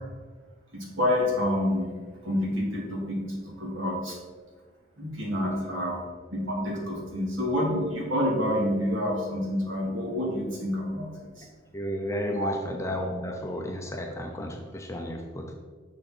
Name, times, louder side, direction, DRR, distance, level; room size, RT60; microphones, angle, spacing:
voice 1, 0.7-2.0 2.2-4.2 5.0-6.0 6.3-11.5 12.3-12.5, left 1 dB, 70° right, -3 dB, 2.3 m, -28 dB
voice 2, 11.7-15.5, equal, 15° left, 1 dB, 0.6 m, -32 dB
6.3 x 6.3 x 4.3 m, 1.5 s
head